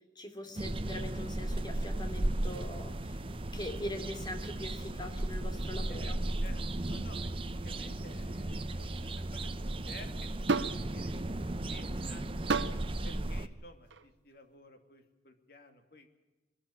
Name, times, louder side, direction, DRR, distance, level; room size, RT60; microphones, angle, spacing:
voice 1, 0.1-3.2 3.5-6.2, left 1 dB, 25° left, 4 dB, 2.9 m, -42 dB
sound 1, 0.6-13.5, right 1 dB, 30° right, 0.8 m, -35 dB
voice 2, 6.4-11.1 11.4-12.3 13.0-16.2, left 2 dB, 55° left, 6 dB, 2.7 m, -54 dB
sound 2, 10.5-10.8 12.5-12.8 13.9-14.0, right 4 dB, 90° right, 0.9 m, -30 dB
22.0 x 13.5 x 9.9 m, 1.1 s
head